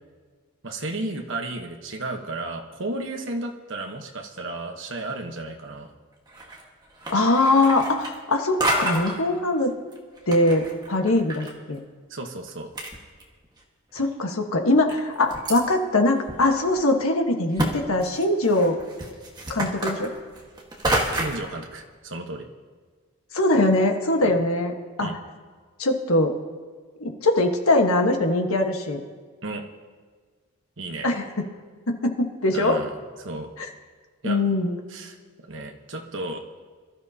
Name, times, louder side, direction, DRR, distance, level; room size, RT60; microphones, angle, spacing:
voice 1, 0.6-5.9 12.1-12.7 21.1-22.5 24.2-24.4 25.0-25.2 29.4-29.6 30.8-31.2 32.5-32.9 33.2-33.5 34.2-34.4 34.9-35.2 35.5-36.4, right 2 dB, 55° right, 3 dB, 1.2 m, -33 dB
sound 1, 6.3-6.7 7.0-8.3 8.6-9.2 9.9-11.5 11.8-11.9 12.5-12.6 12.8-13.6 14.1-14.2 14.9-15.6 16.3-16.4 16.8-16.9 17.6-17.7 18.0-21.5, right 1 dB, 20° right, 1.5 m, -28 dB
voice 2, 7.1-9.7 10.3-11.8 13.9-18.8 19.5-20.1 23.3-24.7 25.0-25.1 25.8-26.3 27.0-29.0 31.0-31.2 31.9-32.8 33.6-33.7 34.2-34.8, left 2 dB, 75° left, 3 dB, 1.4 m, -22 dB
23.5 x 13.0 x 2.9 m, 1.5 s
head